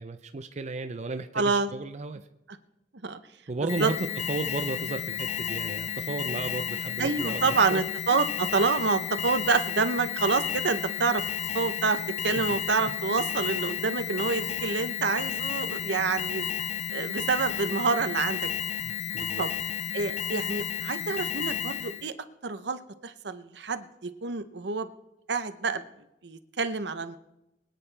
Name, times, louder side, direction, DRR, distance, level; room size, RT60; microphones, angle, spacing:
voice 1, 0.0-2.2 3.5-7.8 8.6-8.8 12.4-12.5 12.9-13.0 18.8-19.5, right 3 dB, 40° right, 8 dB, 0.5 m, -34 dB
voice 2, 1.3-1.7 3.0-3.2 3.8-3.9 7.0-11.2 11.5-16.5 16.9-18.5 19.4-19.5 19.9-22.1 22.4-24.9 25.3-25.8 26.2-27.2, right 4 dB, 70° right, 10 dB, 0.8 m, -27 dB
Alarm, 3.7-22.1, left 9 dB, 40° left, 0.4 m, -32 dB
23.5 x 9.3 x 3.4 m, 0.89 s
head